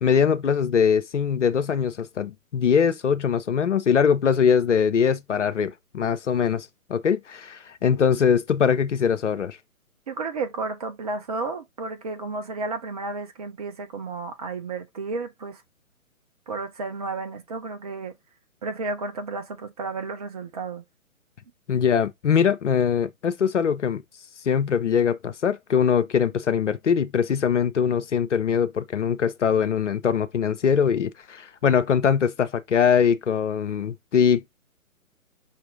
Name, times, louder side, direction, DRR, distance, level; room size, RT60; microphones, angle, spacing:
voice 1, 0.0-9.6 21.7-24.0 24.4-34.5, left 7 dB, 60° left, 0.6 m, -22 dB
voice 2, 10.1-15.6 16.5-18.1 18.6-20.8, right 3 dB, 30° right, 0.7 m, -32 dB
5.6 x 2.5 x 3.6 m
figure-of-eight pair, 130°, 42 cm